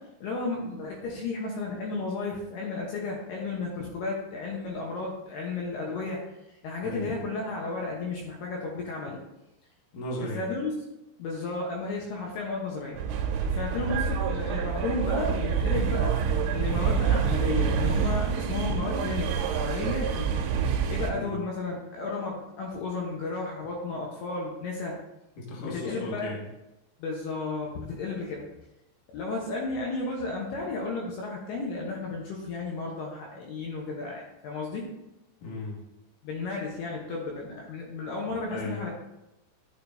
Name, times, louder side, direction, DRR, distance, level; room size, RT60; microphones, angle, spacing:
voice 1, 0.2-6.2 6.6-9.2 10.2-10.7 11.2-13.0 13.4-16.1 16.5-20.4 20.9-25.0 25.6-26.3 27.0-28.5 29.1-34.9 36.2-38.9, left 3 dB, 70° left, -2 dB, 2.7 m, -33 dB
voice 2, 9.9-10.5 13.7-14.0 21.1-21.4 25.4-26.5 35.4-35.8 38.5-38.9, left 1 dB, 50° left, -4 dB, 1.9 m, -36 dB
sound 1, 13.0-21.1, right 7 dB, 85° right, 3.1 m, -27 dB
11.5 x 6.7 x 2.7 m, 0.93 s
omnidirectional pair, 5.5 m